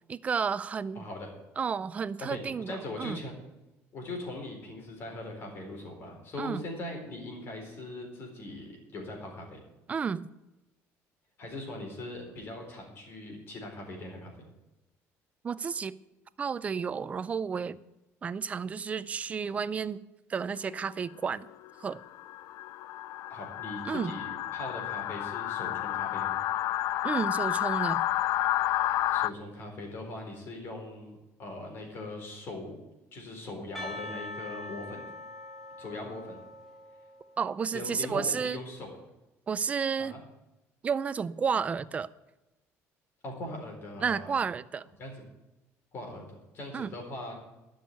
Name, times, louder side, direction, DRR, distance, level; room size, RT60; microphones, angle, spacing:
voice 1, 0.1-1.0 1.6-3.2 6.4-6.6 9.9-10.3 15.4-15.9 16.4-17.8 18.2-20.0 20.3-21.5 21.8-22.0 23.8-24.1 27.0-28.0 37.4-38.6 39.5-40.2 40.8-42.1 44.0-44.8 46.7-46.9, right 6 dB, 25° right, 16 dB, 0.4 m, -31 dB
voice 2, 0.9-1.3 2.2-2.4 2.7-3.3 3.9-9.6 11.4-14.3 23.3-26.4 29.1-32.8 33.1-35.1 35.8-36.4 37.7-39.0 40.0-40.2 43.2-44.4 45.0-45.1 45.9-47.3, left 2 dB, 40° left, 2 dB, 4.3 m, -40 dB
sound 1, 20.7-20.9 21.5-29.3, left 14 dB, 60° left, 0.4 m, -30 dB
Percussion, 33.8-37.7, left 2 dB, 5° left, 2.0 m, -43 dB
12.5 x 6.4 x 9.5 m, 0.98 s
cardioid pair, 155°, 6 cm